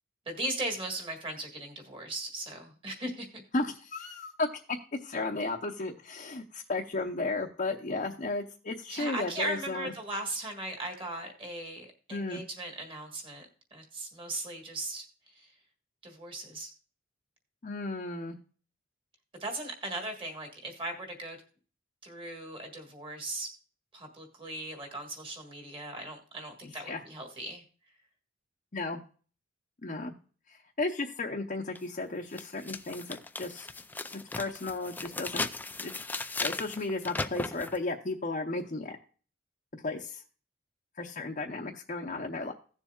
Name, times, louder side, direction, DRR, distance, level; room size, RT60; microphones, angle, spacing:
voice 1, 0.3-3.4 8.9-15.0 15.3-15.5 16.0-16.7 19.4-21.4 22.0-23.5 23.9-27.6, right 2 dB, 25° right, 3 dB, 1.9 m, -38 dB
voice 2, 3.5-9.9 12.1-12.4 17.6-18.4 26.6-27.0 28.7-29.0 29.8-30.1 30.5-33.7 34.3-35.5 35.8-35.9 36.4-39.0 39.8-40.2 41.0-42.5, left 3 dB, 40° left, 0 dB, 0.8 m, -34 dB
sound 1, 31.8-31.9 32.3-37.8, left 3 dB, 10° left, 0.3 m, -37 dB
17.0 x 7.1 x 2.4 m, 0.40 s
head